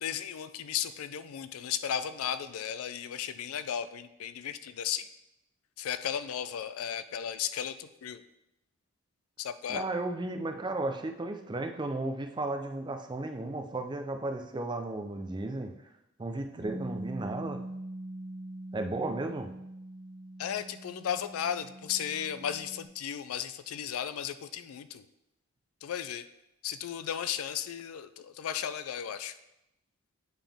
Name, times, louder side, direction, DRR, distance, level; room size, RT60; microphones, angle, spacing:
voice 1, 0.0-5.1 5.8-8.2 9.4-9.8 20.4-25.0 25.8-26.2 26.6-29.3, left 9 dB, 90° left, 12 dB, 0.4 m, -35 dB
voice 2, 9.7-15.7 16.2-17.6 18.7-19.5, right 2 dB, 20° right, 5 dB, 0.4 m, -34 dB
Bass guitar, 16.6-22.9, right 1 dB, 85° right, 1.3 m, -43 dB
8.9 x 3.7 x 3.5 m, 0.87 s
head